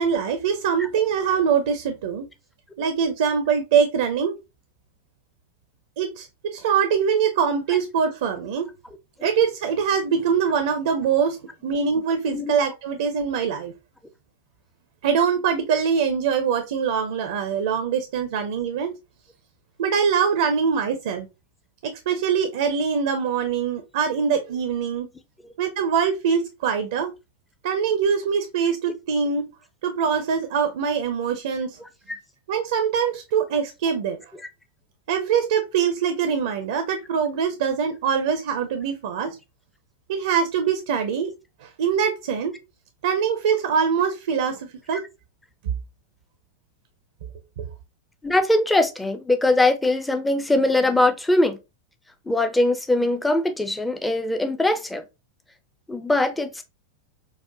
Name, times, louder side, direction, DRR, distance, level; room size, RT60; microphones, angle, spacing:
voice 1, 0.0-2.3 2.8-4.4 6.0-8.7 9.2-11.4 11.6-13.7 15.0-18.9 19.8-21.3 21.8-25.1 25.6-27.1 27.6-29.5 29.8-31.8 32.5-34.2 35.1-39.4 40.1-41.3 41.6-42.6 43.0-45.0 47.6-47.7, right 7 dB, 55° right, 0.5 m, -23 dB
voice 2, 48.2-51.6 52.3-55.0 55.9-56.6, left 2 dB, 5° left, 0.4 m, -21 dB
4.7 x 2.1 x 2.5 m
figure-of-eight pair, 90°, 0 cm